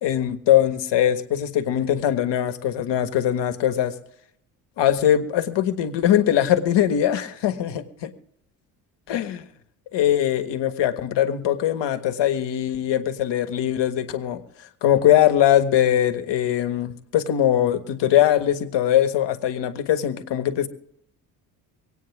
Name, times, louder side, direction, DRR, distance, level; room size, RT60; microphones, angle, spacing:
voice 1, 0.0-3.9 4.8-8.1 9.1-9.4 9.9-14.4 14.8-20.7, left 11 dB, 65° left, 10 dB, 1.6 m, -21 dB
25.0 x 9.2 x 3.6 m, 0.72 s
hypercardioid pair, 60°, 46 cm